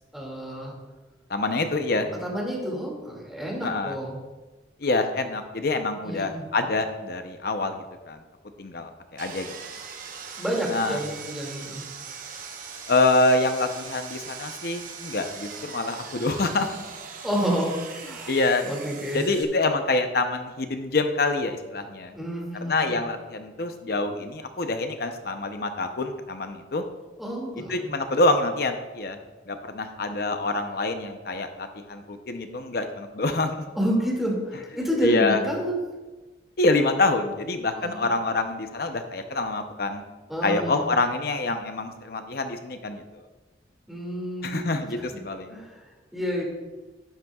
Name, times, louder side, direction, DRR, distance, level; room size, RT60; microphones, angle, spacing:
voice 1, 0.1-0.7 2.2-4.2 6.0-6.4 10.4-11.8 17.2-17.7 18.0-18.3 18.6-19.2 22.1-22.9 27.2-27.9 33.7-35.8 37.7-38.1 40.3-40.8 43.9-44.7 45.1-45.2 45.5-45.8 46.1-46.4, equal, ahead, -3 dB, 2.3 m, -29 dB
voice 2, 1.3-2.1 3.6-4.0 4.8-8.2 8.6-9.5 10.7-11.0 12.9-16.8 18.3-18.7 19.1-22.1 22.7-26.8 27.7-29.2 29.5-33.6 35.0-35.4 36.6-40.0 40.4-43.2 44.4-45.6, left 2 dB, 60° left, 7 dB, 0.7 m, -26 dB
Sawing, 9.2-19.4, right 6 dB, 50° right, 0.9 m, -40 dB
11.5 x 10.5 x 2.4 m, 1.2 s
head